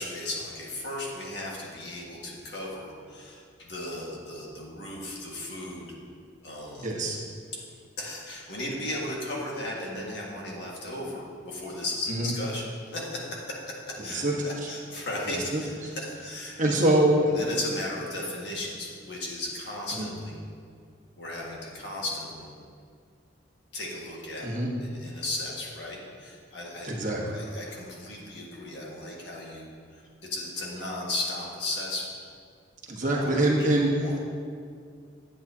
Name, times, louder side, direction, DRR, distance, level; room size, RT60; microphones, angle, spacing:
voice 1, 0.0-5.9 6.4-6.9 8.0-16.8 17.2-20.4 21.2-22.5 23.7-24.5 24.8-26.9 27.3-30.0 30.3-32.0 33.1-33.3 33.6-33.7 34.0-34.2, left 1 dB, 60° left, -3 dB, 1.7 m, -36 dB
voice 2, 6.8-7.2 12.2-12.3 14.1-14.4 15.3-15.6 16.6-17.3 20.0-20.1 24.4-24.7 26.8-27.4 32.9-33.9, right 1 dB, 40° right, -2 dB, 1.2 m, -24 dB
10.5 x 8.4 x 2.8 m, 2.2 s
head